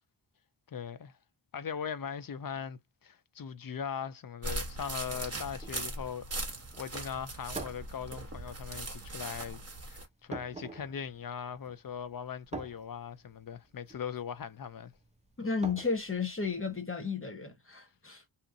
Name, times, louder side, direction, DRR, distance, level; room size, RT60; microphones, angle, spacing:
voice 1, 0.7-1.1 1.5-9.6 9.9-14.9, left 7 dB, 50° left, 0.4 m, -40 dB
sound 1, 4.4-10.1, right 2 dB, 30° right, 1.0 m, -39 dB
sound 2, 5.4-16.8, right 3 dB, 15° right, 0.4 m, -48 dB
voice 2, 15.4-18.2, left 5 dB, 25° left, 0.9 m, -33 dB
2.8 x 2.4 x 2.5 m
wide cardioid pair, 70°, 48 cm